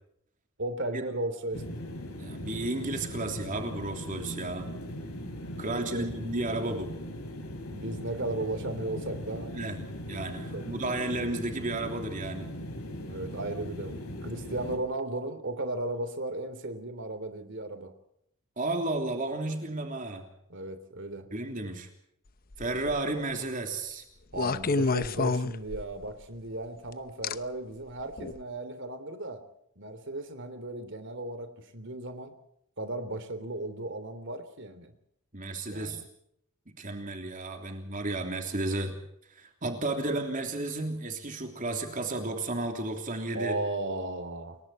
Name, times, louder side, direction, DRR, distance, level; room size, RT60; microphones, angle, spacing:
voice 1, 0.6-1.8 5.6-6.1 7.7-9.5 10.5-10.6 13.1-17.9 20.5-21.3 24.3-29.4 29.8-32.3 32.8-34.9 35.7-36.0 43.3-44.6, right 2 dB, 55° right, 10 dB, 3.3 m, -35 dB
sound 1, 1.5-14.8, equal, 85° left, 6.9 m, -39 dB
voice 2, 2.2-4.7 5.6-6.9 9.5-9.8 10.1-12.5 18.6-20.2 21.3-21.9 22.6-24.0 35.3-36.0 36.8-39.0 39.3-43.5, right 2 dB, 35° right, 4 dB, 3.2 m, -33 dB
sound 2, 22.5-23.0 24.3-26.1 27.2-27.3 28.2-28.4, left 3 dB, 40° left, 0.8 m, -28 dB
29.5 x 23.0 x 4.4 m, 0.75 s
head